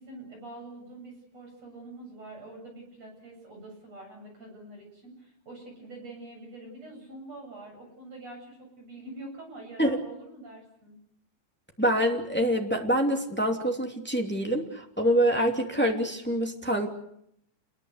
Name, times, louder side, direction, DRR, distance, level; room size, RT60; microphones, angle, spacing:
voice 1, 0.0-11.0, right 2 dB, 35° right, 2 dB, 8.7 m, -45 dB
voice 2, 11.8-16.9, equal, 5° left, 2 dB, 1.0 m, -26 dB
29.0 x 21.5 x 8.1 m, 0.74 s
omnidirectional pair, 5.4 m